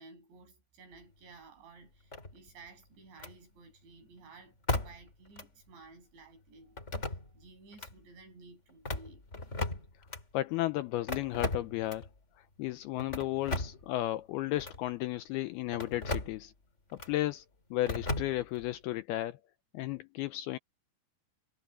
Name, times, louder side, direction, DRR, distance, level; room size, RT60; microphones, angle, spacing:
voice 1, 0.0-4.6 4.8-9.3, right 3 dB, 85° right, 9.4 m, -55 dB
sound 1, 2.1-2.6 3.2-3.4 4.7-5.1 5.4-5.5 6.8-7.4 7.7-7.9 8.7-10.2 11.1-12.1 13.0-13.9 14.6-14.8 15.7-16.4 17.0-17.1 17.9-18.7, left 2 dB, 20° left, 2.7 m, -36 dB
voice 2, 10.3-12.1 12.4-16.5 16.9-17.4 17.7-19.4 19.7-20.6, left 16 dB, 85° left, 2.3 m, -34 dB
omnidirectional pair, 5.0 m